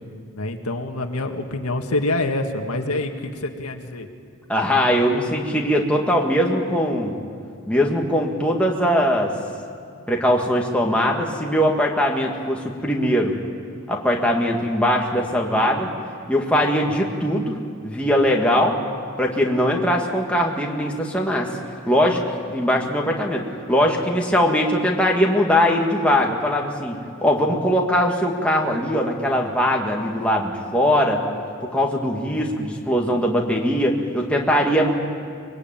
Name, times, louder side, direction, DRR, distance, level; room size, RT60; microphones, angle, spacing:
voice 1, 0.3-3.1 3.4-4.1, left 2 dB, 85° left, 4 dB, 1.9 m, -26 dB
voice 2, 4.5-7.1 7.7-9.3 10.1-13.3 13.9-15.9 16.3-17.6 17.8-18.8 19.2-21.6 21.9-22.2 22.5-31.2 31.6-34.9, equal, 5° left, -1 dB, 2.1 m, -21 dB
24.5 x 21.0 x 9.1 m, 2.2 s
head